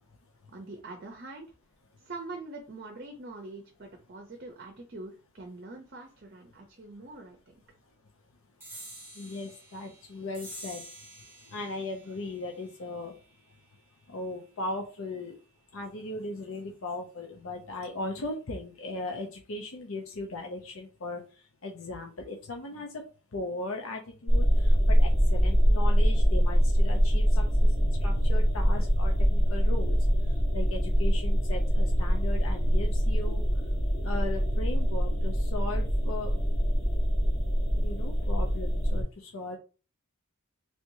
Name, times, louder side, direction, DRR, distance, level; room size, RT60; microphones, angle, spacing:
voice 1, 0.5-1.5 2.0-7.6, right 2 dB, 45° right, 2 dB, 0.6 m, -44 dB
sound 1, 8.6-15.4, right 1 dB, 10° right, 1.1 m, -50 dB
voice 2, 9.1-10.8 11.5-13.2 14.1-15.4 15.7-21.2 21.6-23.0 23.3-27.4 27.8-30.0 30.3-33.4 34.0-36.3 37.7-39.6, left 2 dB, 75° left, 2 dB, 0.6 m, -38 dB
sound 2, 24.3-39.0, equal, 45° left, 1.4 m, -24 dB
3.4 x 2.9 x 2.6 m, 0.35 s
head